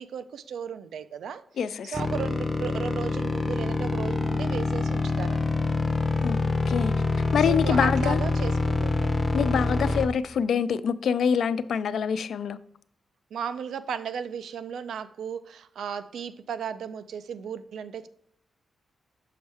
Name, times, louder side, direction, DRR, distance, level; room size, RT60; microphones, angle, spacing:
voice 1, 0.0-1.4 1.8-5.6 7.5-9.1 13.3-18.1, right 7 dB, 85° right, 0.4 m, -35 dB
voice 2, 1.6-2.0 6.2-6.4 6.7-6.9 7.3-8.2 9.3-12.6, left 7 dB, 70° left, 0.3 m, -25 dB
sound 1, 1.9-10.1, left 3 dB, 15° left, 0.6 m, -26 dB
6.5 x 5.3 x 3.4 m
wide cardioid pair, 140°, 0 cm